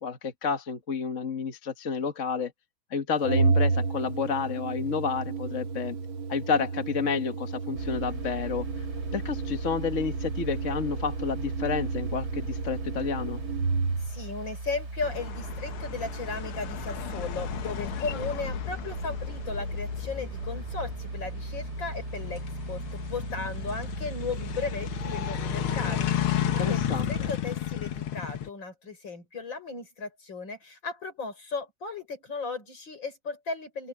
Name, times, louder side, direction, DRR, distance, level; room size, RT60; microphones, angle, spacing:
voice 1, 0.0-2.5 2.9-6.0 6.3-8.8 9.1-13.4 26.3-27.3, left 5 dB, 40° left, 1.5 m, -30 dB
Organ, 3.2-14.2, right 4 dB, 75° right, 2.7 m, -31 dB
sound 1, 7.7-27.3, right 2 dB, 45° right, 5.7 m, -38 dB
voice 2, 14.0-33.9, left 4 dB, 60° left, 6.2 m, -36 dB
sound 2, 15.0-28.5, left 10 dB, 80° left, 2.0 m, -33 dB
open air
omnidirectional pair, 2.3 m